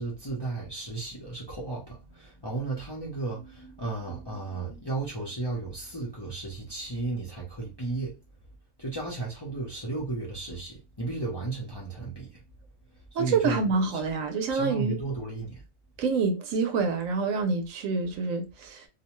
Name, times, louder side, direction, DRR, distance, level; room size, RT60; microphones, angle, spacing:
voice 1, 0.0-8.2 8.8-12.4 13.1-14.0 14.5-15.6, right 3 dB, 25° left, 0.6 m, -34 dB
voice 2, 13.1-15.0 16.0-18.9, right 4 dB, 75° right, 1.0 m, -27 dB
2.7 x 2.1 x 3.0 m
omnidirectional pair, 1.4 m